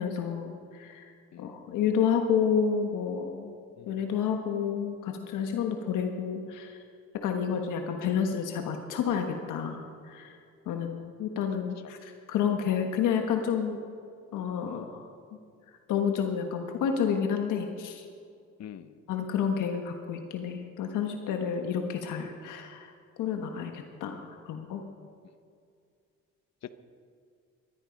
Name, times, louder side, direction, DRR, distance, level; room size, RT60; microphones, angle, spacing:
voice 1, 0.0-3.6 3.9-6.8 7.1-10.4 10.7-13.8 14.3-15.0 15.9-18.0 19.1-22.9 23.2-24.8, left 7 dB, 90° left, 4 dB, 1.4 m, -30 dB
voice 2, 18.6-19.0 22.4-22.5 26.6-26.7, left 10 dB, 60° left, 12 dB, 1.0 m, -46 dB
20.5 x 13.0 x 5.3 m, 2.3 s
cardioid pair, 90°, 30 cm